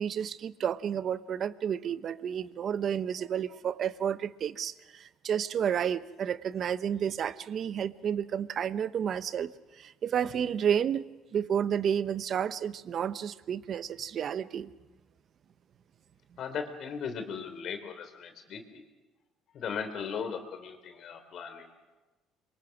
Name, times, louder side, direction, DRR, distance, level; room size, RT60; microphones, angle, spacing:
voice 1, 0.0-9.5 9.8-14.7, right 8 dB, 50° right, 15 dB, 0.8 m, -31 dB
voice 2, 16.4-18.8 19.5-21.7, left 6 dB, 55° left, 7 dB, 3.3 m, -37 dB
26.5 x 23.5 x 6.0 m, 1.2 s
cardioid pair, 100°, 0 cm